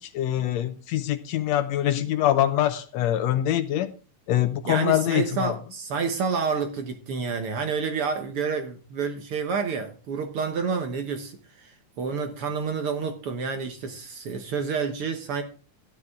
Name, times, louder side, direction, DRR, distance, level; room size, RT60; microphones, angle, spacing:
voice 1, 0.0-3.9 4.3-5.6, left 12 dB, 75° left, 1.7 m, -24 dB
voice 2, 4.7-15.4, right 5 dB, 60° right, 1.7 m, -29 dB
12.5 x 10.0 x 3.6 m
omnidirectional pair, 3.4 m